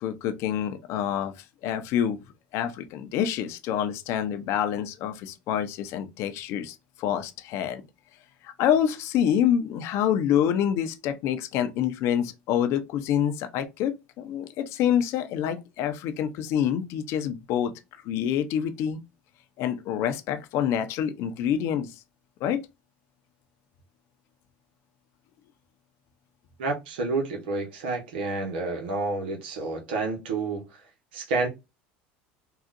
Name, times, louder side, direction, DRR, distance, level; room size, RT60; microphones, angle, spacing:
voice 1, 0.0-1.3 1.6-2.2 2.5-7.8 8.4-17.7 18.0-19.0 19.6-21.9 22.4-22.6, left 9 dB, 60° left, 0.6 m, -27 dB
voice 2, 26.6-30.8 31.1-31.5, right 3 dB, 90° right, 1.0 m, -29 dB
3.7 x 2.4 x 2.5 m
supercardioid pair, 110°, 5 cm